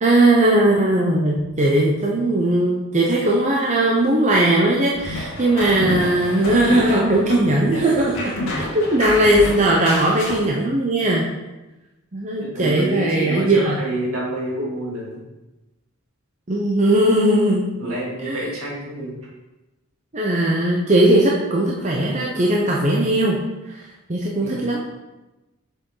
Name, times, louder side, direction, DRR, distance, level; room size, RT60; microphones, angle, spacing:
voice 1, 0.0-11.3 12.1-13.8 16.5-18.4 20.1-23.4 23.6-23.8 24.1-24.8, right 1 dB, 30° right, -2 dB, 0.8 m, -19 dB
sound 1, 4.9-10.5, left 1 dB, 65° left, 2.3 m, -29 dB
voice 2, 12.4-15.2 17.8-19.2 24.4-24.7, right 1 dB, 70° right, -5 dB, 2.9 m, -28 dB
6.9 x 6.8 x 3.9 m, 1.1 s
head